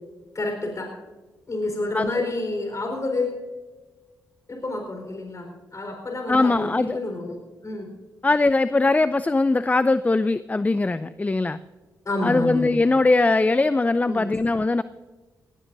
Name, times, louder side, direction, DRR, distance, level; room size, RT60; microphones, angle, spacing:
voice 1, 0.3-1.0 1.5-3.4 4.5-7.4 7.6-7.9 12.0-12.8 14.1-14.3, left 2 dB, 45° left, 2 dB, 4.3 m, -29 dB
voice 2, 1.9-2.2 6.3-7.0 8.2-11.6 12.2-14.8, left 3 dB, 20° left, 14 dB, 0.5 m, -21 dB
19.0 x 17.5 x 2.7 m, 1.3 s
cardioid pair, 60°, 8 cm